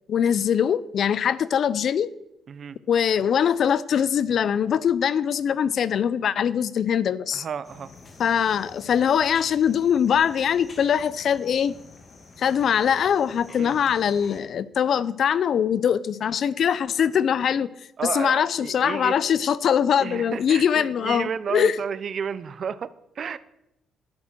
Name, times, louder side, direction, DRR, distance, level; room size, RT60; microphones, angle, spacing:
voice 1, 0.1-2.1 2.9-7.5 8.2-11.7 12.4-17.7 18.1-21.8, left 8 dB, 60° left, 0.6 m, -22 dB
voice 2, 7.3-7.9 13.6-13.7 18.0-19.2 20.0-23.4, right 7 dB, 55° right, 0.7 m, -32 dB
sound 1, 7.6-14.4, left 3 dB, 40° left, 2.3 m, -48 dB
11.5 x 10.5 x 6.2 m
cardioid pair, 90°, 0 cm